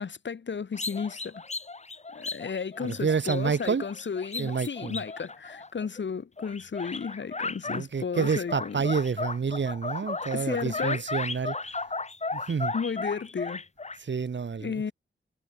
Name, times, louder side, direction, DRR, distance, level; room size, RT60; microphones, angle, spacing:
voice 1, 0.0-1.4 2.1-8.8 10.3-11.0 12.7-13.6 14.6-14.9, left 6 dB, 65° left, 3.0 m, -33 dB
sound 1, 0.7-6.0 6.4-7.8 8.1-14.0, left 3 dB, 35° left, 3.9 m, -35 dB
voice 2, 2.8-3.9 4.4-5.0 7.7-11.6 12.3-12.7 14.0-14.8, right 5 dB, 65° right, 5.2 m, -29 dB
wide cardioid pair, 100°, 20 cm